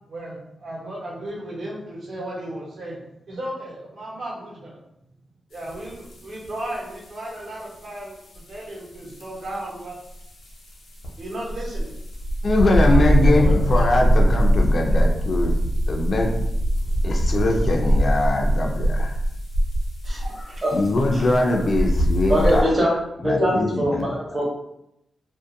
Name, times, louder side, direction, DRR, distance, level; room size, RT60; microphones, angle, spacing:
voice 1, 0.1-4.8 5.5-8.2 8.5-10.0 11.2-11.9 12.8-14.2 14.8-15.0 16.8-17.0 17.8-18.1, right 1 dB, 55° right, -5 dB, 1.0 m, -35 dB
sound 1, 5.5-22.6, equal, 85° left, 0.7 m, -23 dB
voice 2, 12.4-15.6 15.9-16.3 17.0-19.2 20.7-22.7 23.2-24.4, left 2 dB, 40° left, 1 dB, 0.3 m, -22 dB
voice 3, 20.0-20.8 21.1-21.3 22.3-22.9 23.2-24.5, equal, 35° right, -4 dB, 0.9 m, -23 dB
2.5 x 2.4 x 2.5 m, 0.81 s
wide cardioid pair, 160°, 0 cm